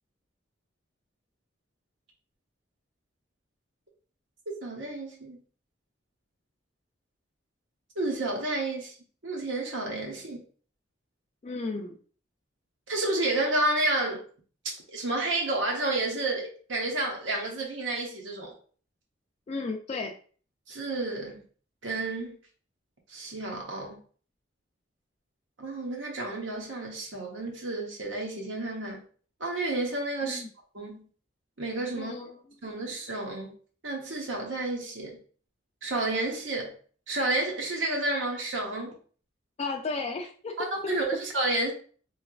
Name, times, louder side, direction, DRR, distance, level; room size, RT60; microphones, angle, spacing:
voice 1, 4.6-5.4 8.0-8.9 9.2-10.4 12.9-14.2 14.6-18.5 20.7-21.4 21.8-22.4 23.1-24.0 25.6-29.0 29.4-30.4 30.7-31.0 31.6-32.1 32.6-33.5 33.8-35.2 35.8-36.7 37.1-38.9 40.6-41.7, right 2 dB, 80° right, 1.0 m, -30 dB
voice 2, 11.4-12.0 19.5-20.1 30.2-30.5 31.9-32.4 39.6-40.9, left 3 dB, 35° left, 0.3 m, -34 dB
3.2 x 2.8 x 2.4 m
head